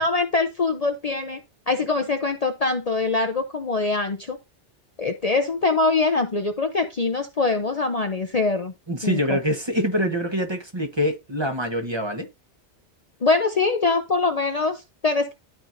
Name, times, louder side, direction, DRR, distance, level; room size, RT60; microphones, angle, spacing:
voice 1, 0.0-1.4 1.7-4.4 5.0-8.7 9.0-9.4 13.2-15.3, left 3 dB, 40° left, 0.7 m, -23 dB
voice 2, 8.9-12.3, equal, 25° right, 1.2 m, -25 dB
12.5 x 4.4 x 2.6 m
omnidirectional pair, 1.2 m